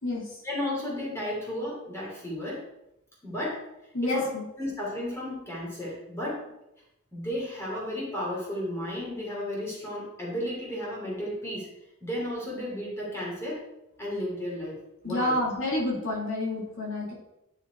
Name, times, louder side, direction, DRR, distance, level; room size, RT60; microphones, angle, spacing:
voice 1, 0.4-2.6 3.2-3.6 4.0-4.2 4.6-6.4 7.1-11.7 12.0-13.6 14.0-14.8 15.0-15.4, left 1 dB, 10° left, -5 dB, 3.2 m, -33 dB
voice 2, 3.9-4.4 15.0-17.1, left 1 dB, 60° left, -4 dB, 2.5 m, -29 dB
10.0 x 5.6 x 4.7 m, 0.88 s
head